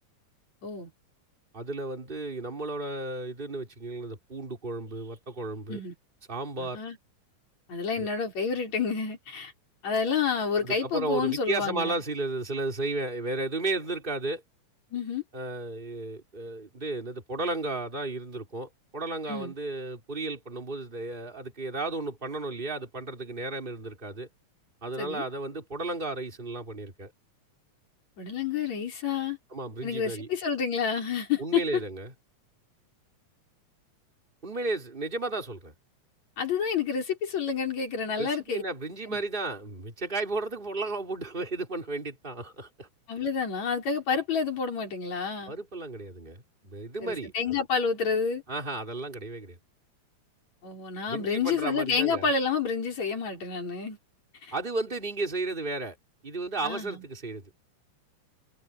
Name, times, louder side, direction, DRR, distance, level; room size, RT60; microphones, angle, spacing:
voice 1, 1.5-5.8 6.3-6.8 8.0-8.1 10.6-14.4 15.3-24.3 24.8-27.1 29.5-30.3 31.4-32.1 34.4-35.7 38.2-42.9 45.5-47.6 48.5-49.6 51.1-52.3 54.5-56.0 56.2-57.4, right 2 dB, 15° right, 4.2 m, -33 dB
voice 2, 6.6-7.0 7.7-9.5 9.8-11.9 14.9-15.2 19.3-19.5 25.0-25.2 28.2-29.4 29.8-31.8 36.4-38.6 39.1-39.2 43.1-45.5 47.0-48.4 50.6-54.0 54.4-54.5 56.6-57.0, left 6 dB, 65° left, 6.7 m, -29 dB
omnidirectional pair, 3.4 m